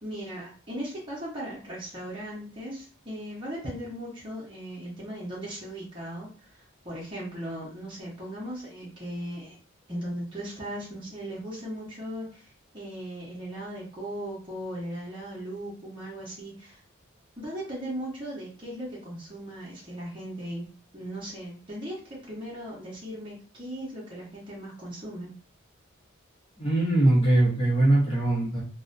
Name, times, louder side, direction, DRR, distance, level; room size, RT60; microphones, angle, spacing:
voice 1, 0.0-6.3 6.8-9.6 9.9-12.5 12.7-16.8 17.4-20.7 20.9-25.3, equal, 25° right, -7 dB, 0.8 m, -37 dB
voice 2, 26.6-28.6, right 1 dB, 25° left, -6 dB, 0.7 m, -21 dB
2.4 x 2.1 x 2.5 m, 0.38 s
head